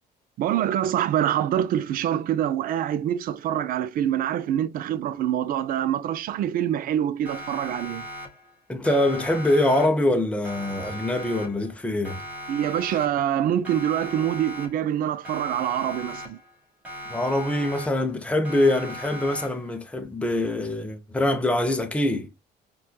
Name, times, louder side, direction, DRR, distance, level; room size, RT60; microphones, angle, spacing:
voice 1, 0.4-8.1 12.5-16.4, right 10 dB, 60° right, 0.4 m, -25 dB
Siren, 7.2-8.6 8.8-10.2 10.4-11.8 12.0-13.4 13.6-15.0 15.2-16.6 16.8-18.2 18.4-19.8, equal, 10° right, 1.5 m, -39 dB
voice 2, 8.7-12.2 17.1-22.3, left 1 dB, 5° left, 0.6 m, -24 dB
4.1 x 2.3 x 2.2 m
cardioid pair, 110°, 17 cm